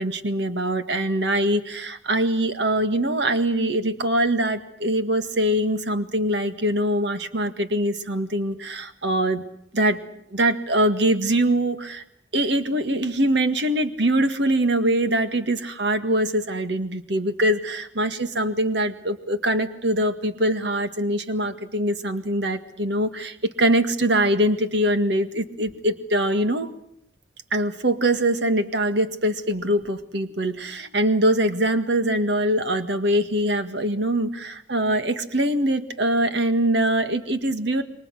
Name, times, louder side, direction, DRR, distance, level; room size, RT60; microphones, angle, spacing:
voice 1, 0.0-9.4 9.7-10.0 10.3-12.0 12.3-26.7 27.5-37.8, right 1 dB, 60° right, 9 dB, 1.8 m, -23 dB
28.5 x 24.0 x 6.4 m, 0.72 s
head